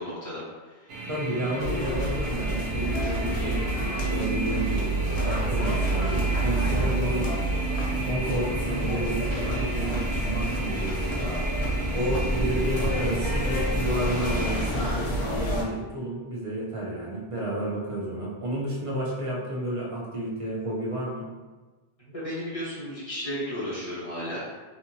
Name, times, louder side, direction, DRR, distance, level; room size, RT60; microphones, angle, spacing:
voice 1, 0.0-0.9 22.0-24.4, equal, 35° left, -9 dB, 1.1 m, -34 dB
sound 1, 0.9-14.7, right 2 dB, 75° right, 0.8 m, -35 dB
voice 2, 1.1-4.9 5.1-7.3 7.9-11.3 11.9-21.3, right 1 dB, 45° right, -4 dB, 0.5 m, -31 dB
sound 2, 1.6-15.6, right 1 dB, 90° left, 0.9 m, -28 dB
2.8 x 2.6 x 2.6 m, 1.3 s
omnidirectional pair, 1.1 m